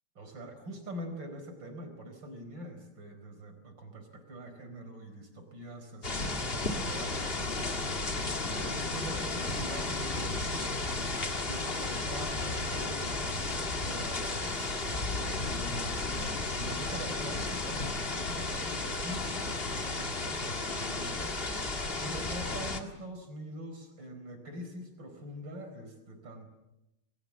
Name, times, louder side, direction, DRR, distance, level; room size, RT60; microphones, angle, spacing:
voice 1, 0.1-11.0 11.4-21.3 22.0-26.5, right 1 dB, 30° right, 6 dB, 4.7 m, -44 dB
sound 1, 6.0-22.8, left 3 dB, 75° left, 0.5 m, -33 dB
29.5 x 21.5 x 7.3 m, 0.93 s
omnidirectional pair, 4.5 m